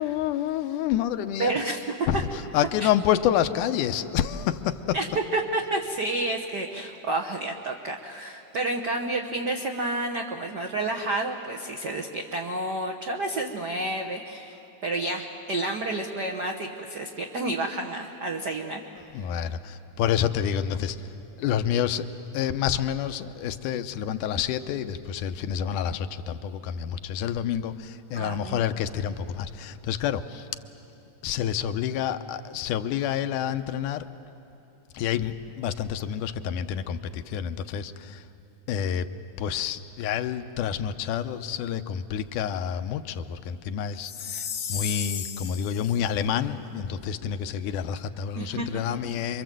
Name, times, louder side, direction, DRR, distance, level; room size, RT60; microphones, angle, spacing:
voice 1, 0.0-1.6 2.1-2.2 2.5-5.0 19.1-21.0 21.4-22.1 22.3-30.4 31.2-34.0 34.9-38.2 38.7-39.1 39.4-44.4 44.7-49.4, left 9 dB, 80° left, 10 dB, 2.2 m, -28 dB
voice 2, 1.4-1.8 2.1-2.2 2.8-2.9 4.9-14.6 14.8-18.8 28.1-28.6 48.4-48.8, right 2 dB, 70° right, 1 dB, 0.9 m, -30 dB
Chime, 44.0-46.0, left 8 dB, 60° left, 1.2 m, -34 dB
26.5 x 24.5 x 7.6 m, 3.0 s
omnidirectional pair, 3.7 m